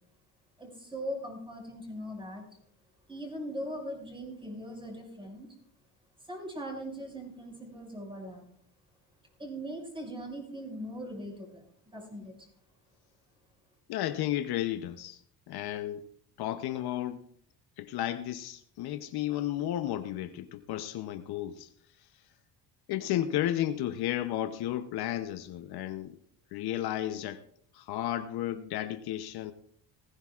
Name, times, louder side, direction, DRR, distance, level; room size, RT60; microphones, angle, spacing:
voice 1, 0.6-2.4 3.1-5.5 6.2-8.4 9.4-11.6 11.9-12.5, equal, 10° right, 5.9 m, -40 dB
voice 2, 13.9-15.2 15.5-16.1 16.4-17.2 17.8-21.7 22.9-26.2 26.5-27.4 27.7-29.5, left 12 dB, 65° left, 0.8 m, -33 dB
19.0 x 15.5 x 2.4 m
cardioid pair, 115°, 41 cm